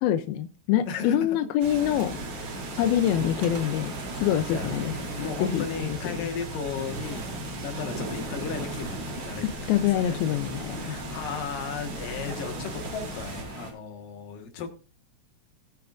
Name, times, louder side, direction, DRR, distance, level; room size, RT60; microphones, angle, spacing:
voice 1, 0.0-4.9 5.4-6.3 9.6-11.0, left 11 dB, 90° left, 10 dB, 2.5 m, -26 dB
voice 2, 0.9-1.3 2.4-2.6 4.3-10.3 10.7-14.7, left 6 dB, 70° left, 4 dB, 3.1 m, -36 dB
sound 1, 1.6-13.4, right 1 dB, 55° right, 3.0 m, -39 dB
sound 2, 1.7-13.7, right 2 dB, 85° right, 5.1 m, -38 dB
21.0 x 6.9 x 2.5 m, 0.33 s
omnidirectional pair, 4.2 m